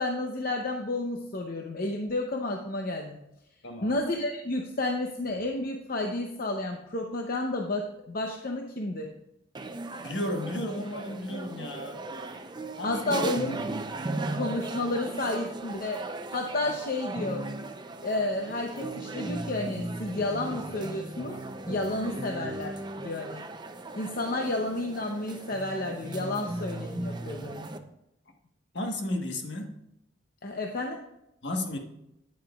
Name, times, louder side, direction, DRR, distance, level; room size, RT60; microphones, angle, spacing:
voice 1, 0.0-3.2 3.8-9.1 12.8-13.6 14.3-16.0 16.3-17.5 18.0-21.4 21.7-23.5 23.9-27.7 30.4-31.0, left 2 dB, 50° left, 2 dB, 0.7 m, -31 dB
voice 2, 3.6-3.9 10.0-12.0 12.8-13.1 28.7-29.7 31.4-31.8, left 1 dB, 65° left, 3 dB, 1.3 m, -33 dB
sound 1, 9.5-27.8, right 2 dB, 25° right, 0.5 m, -37 dB
9.5 x 8.6 x 2.4 m, 0.84 s
head